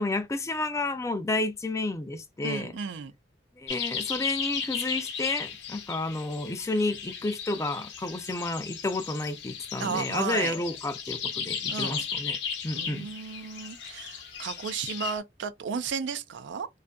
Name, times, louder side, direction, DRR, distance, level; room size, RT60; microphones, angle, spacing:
voice 1, 0.0-2.7 3.6-12.4 12.6-13.1, left 2 dB, 15° left, 0.3 m, -31 dB
voice 2, 2.4-3.1 9.8-10.5 11.7-12.1 12.7-16.7, right 6 dB, 85° right, 0.3 m, -34 dB
sound 1, 3.7-15.2, left 7 dB, 80° left, 0.7 m, -36 dB
2.6 x 2.3 x 2.2 m
head